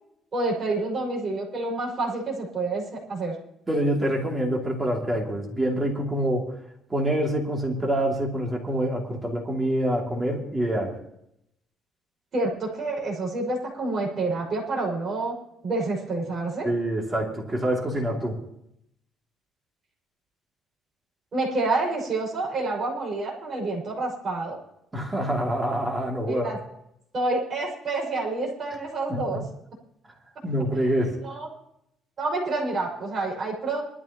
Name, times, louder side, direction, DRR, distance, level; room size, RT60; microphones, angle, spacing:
voice 1, 0.3-3.4 12.3-15.4 15.6-16.7 21.3-24.6 26.3-26.6 27.1-29.4 31.2-31.5 32.2-33.8, right 2 dB, 30° right, -2 dB, 5.7 m, -28 dB
voice 2, 3.7-6.5 6.9-10.9 16.6-18.4 24.9-26.5 29.1-29.2 30.4-31.1, right 1 dB, 15° right, -1 dB, 2.7 m, -26 dB
22.0 x 13.5 x 3.0 m, 0.78 s
cardioid pair, 170°, 0 cm